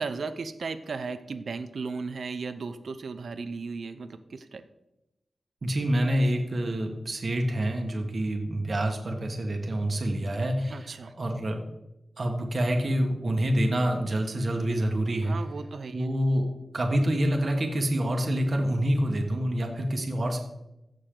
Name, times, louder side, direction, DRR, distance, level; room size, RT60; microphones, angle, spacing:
voice 1, 0.0-4.6 10.7-11.1 15.2-16.1, right 4 dB, 75° right, 11 dB, 0.7 m, -35 dB
voice 2, 5.6-11.6 12.2-15.4 15.9-16.5 16.7-20.4, right 1 dB, 50° right, 2 dB, 1.5 m, -27 dB
15.5 x 6.6 x 3.8 m, 0.91 s
wide cardioid pair, 120°, 0 cm